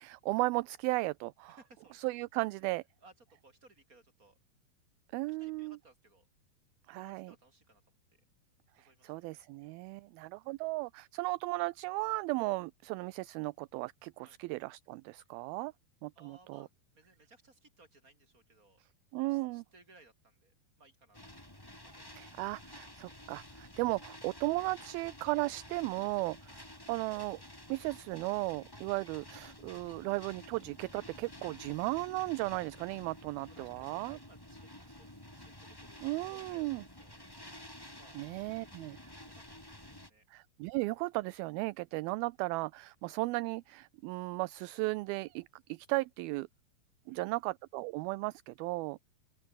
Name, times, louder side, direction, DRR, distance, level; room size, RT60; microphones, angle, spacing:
voice 1, 0.0-1.6 1.9-2.8 5.1-5.8 6.9-7.3 8.8-15.7 16.0-16.7 19.1-19.6 22.1-26.5 26.9-27.4 27.7-34.2 36.0-36.8 38.1-39.0 40.3-46.5 47.1-49.0, right 22 dB, 80° right, 2.3 m, -35 dB
voice 2, 1.5-2.0 2.6-4.4 5.3-6.3 6.9-7.8 8.7-9.1 14.2-14.4 16.1-18.8 19.2-21.2 21.8-22.2 31.5-31.6 33.5-34.7 35.0-36.0 36.3-37.3 38.0-38.2 38.7-40.3 47.1-47.4, right 3 dB, 20° right, 6.0 m, -62 dB
sound 1, 21.1-40.1, left 1 dB, 5° left, 3.6 m, -51 dB
open air
omnidirectional pair, 4.5 m